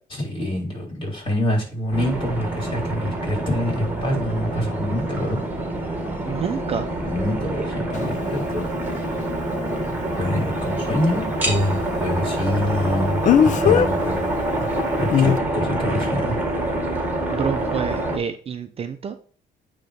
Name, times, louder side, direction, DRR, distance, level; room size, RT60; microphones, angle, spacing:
voice 1, 0.1-5.4 7.1-8.7 10.2-14.3 14.6-14.7 15.0-16.3, left 1 dB, 30° left, 0 dB, 3.6 m, -25 dB
sound 1, 1.9-18.2, right 1 dB, 10° right, 1.6 m, -26 dB
voice 2, 6.2-6.8 17.3-19.1, right 7 dB, 35° right, 8 dB, 0.6 m, -28 dB
Speech, 7.9-8.0 13.2-13.9 15.1-15.4, left 8 dB, 45° left, 0.6 m, -16 dB
9.1 x 3.1 x 5.1 m, 0.43 s
cardioid pair, 110°, 17 cm